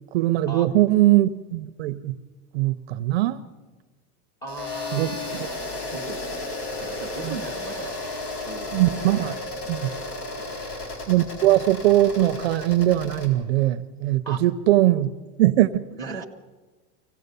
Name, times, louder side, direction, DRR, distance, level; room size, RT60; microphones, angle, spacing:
voice 1, 0.1-2.2 2.5-3.4 4.9-5.5 7.2-7.3 8.7-9.3 9.7-9.9 11.1-15.1 15.4-16.2, right 15 dB, 45° right, 0.5 m, -21 dB
voice 2, 4.4-7.9 8.4-9.2 10.4-10.7 14.2-14.4 15.9-16.2, right 3 dB, 10° left, 0.7 m, -38 dB
sound 1, 4.5-13.3, left 2 dB, 75° left, 4.4 m, -33 dB
24.5 x 17.0 x 6.7 m
supercardioid pair, 175°, 45 cm